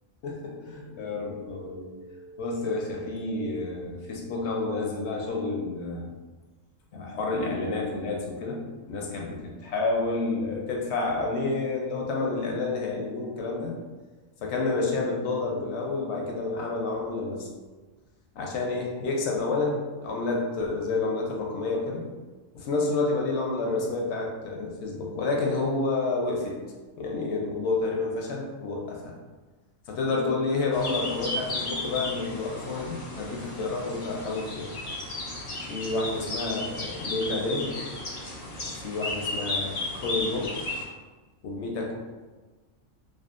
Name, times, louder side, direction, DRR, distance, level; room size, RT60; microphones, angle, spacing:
voice 1, 0.2-6.1 6.9-8.6 8.9-13.7 14.4-17.5 18.3-22.1 22.6-26.5 27.0-29.2 29.9-34.7 35.7-37.7 38.8-40.5 41.4-41.9, left 3 dB, 65° left, -1 dB, 0.8 m, -29 dB
sound 1, 30.7-40.8, left 2 dB, 80° left, 0.3 m, -34 dB
2.6 x 2.3 x 2.4 m, 1.3 s
omnidirectional pair, 1.4 m